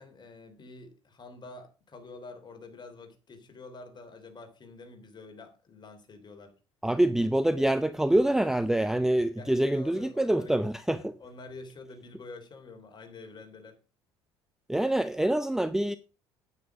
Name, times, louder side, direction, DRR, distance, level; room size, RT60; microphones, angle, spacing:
voice 1, 0.0-6.5 9.3-10.5 11.2-13.8, left 3 dB, 30° left, 3.2 m, -47 dB
voice 2, 6.8-11.2 14.7-16.0, right 1 dB, 5° right, 0.5 m, -25 dB
9.3 x 9.2 x 4.8 m
figure-of-eight pair, 55°, 14 cm